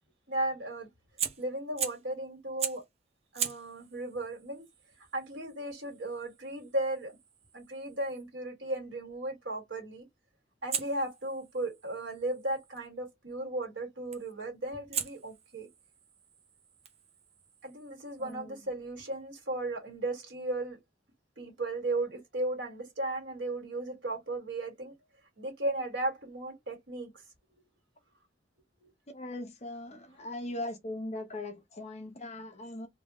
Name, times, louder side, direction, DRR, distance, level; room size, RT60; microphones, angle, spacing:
voice 1, 0.3-0.9 1.4-2.8 3.3-4.6 5.1-7.2 7.5-10.0 10.6-15.7 17.6-20.8 21.4-24.9 25.4-27.1 28.8-28.9, right 2 dB, 90° right, 1.7 m, -35 dB
Fire, 1.2-2.1 2.6-2.9 3.3-8.3 10.7-12.8 14.1-14.4 14.9-18.4, right 8 dB, 35° right, 0.5 m, -41 dB
voice 2, 18.2-18.7 29.1-32.9, left 1 dB, 35° left, 0.8 m, -40 dB
3.3 x 2.4 x 2.9 m
head